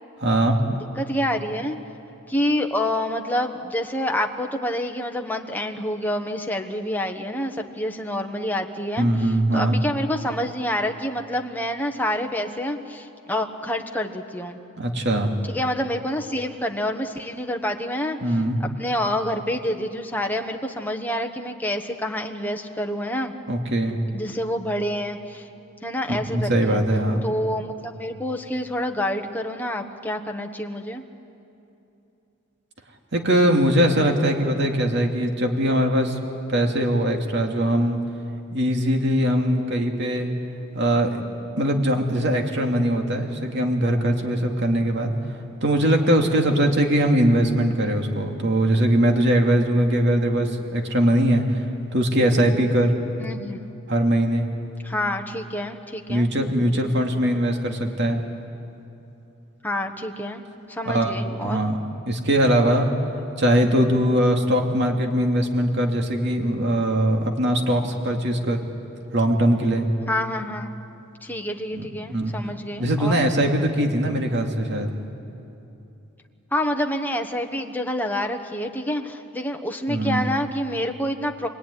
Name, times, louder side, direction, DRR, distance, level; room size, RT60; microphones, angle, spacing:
voice 1, 0.2-0.6 9.0-9.8 14.8-15.3 18.2-18.6 23.5-24.0 26.1-27.2 33.1-36.2 36.5-38.0 38.5-40.3 40.7-41.2 41.6-45.1 45.6-51.6 51.9-53.0 53.9-54.5 56.1-58.2 60.9-61.1 61.4-61.8 62.1-62.9 63.4-68.6 69.1-69.9 71.8-72.4 72.8-74.9 79.9-80.2, right 1 dB, 55° right, 3 dB, 2.6 m, -21 dB
voice 2, 1.0-1.8 2.3-14.6 15.4-23.3 24.1-25.5 25.8-26.8 27.2-31.0 53.2-53.6 54.8-56.3 59.6-60.4 60.7-61.6 70.1-70.7 71.2-73.2 76.5-81.5, left 1 dB, 10° left, 3 dB, 1.3 m, -27 dB
27.5 x 20.0 x 9.8 m, 2.9 s
head